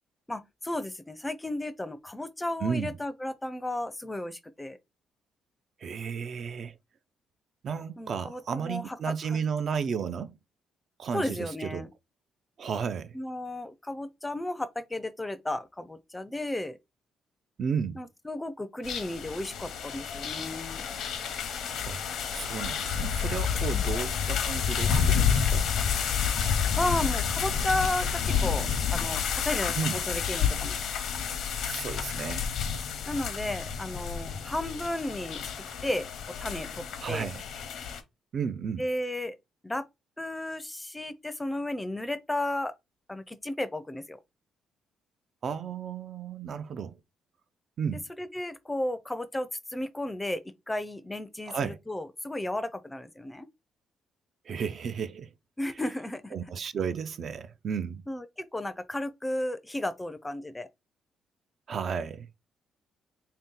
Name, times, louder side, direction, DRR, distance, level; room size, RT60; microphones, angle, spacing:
voice 1, 0.3-4.8 8.0-9.4 11.1-11.9 13.1-16.8 18.0-20.9 23.7-23.9 26.8-30.8 33.1-35.4 35.8-36.1 36.4-37.3 38.8-39.4 39.6-39.8 40.2-42.7 43.1-44.2 48.2-53.5 55.6-56.4 58.1-60.7, left 1 dB, 15° left, 0.4 m, -34 dB
voice 2, 2.6-2.9 5.8-6.8 7.6-10.4 11.0-11.9 12.6-13.2 17.6-18.0 21.9-22.0 22.3-25.7 29.8-30.0 31.6-32.5 37.0-37.4 38.3-38.9 45.4-47.0 47.8-48.1 51.5-51.8 54.4-55.3 56.3-58.0 61.7-62.3, right 6 dB, 55° right, 0.3 m, -33 dB
sound 1, 18.8-38.0, left 7 dB, 75° left, 0.7 m, -30 dB
3.3 x 2.8 x 3.6 m
cardioid pair, 90°, 0 cm